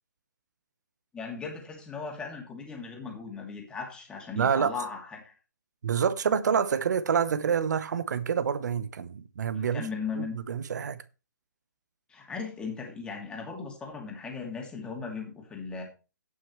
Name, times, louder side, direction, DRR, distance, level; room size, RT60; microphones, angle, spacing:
voice 1, 1.1-5.3 9.6-10.3 12.1-15.8, left 5 dB, 10° left, 2.7 m, -37 dB
voice 2, 4.4-4.7 5.8-9.9 10.2-11.0, right 7 dB, 60° right, 1.1 m, -27 dB
17.0 x 6.3 x 3.2 m
hypercardioid pair, 150°, 10 cm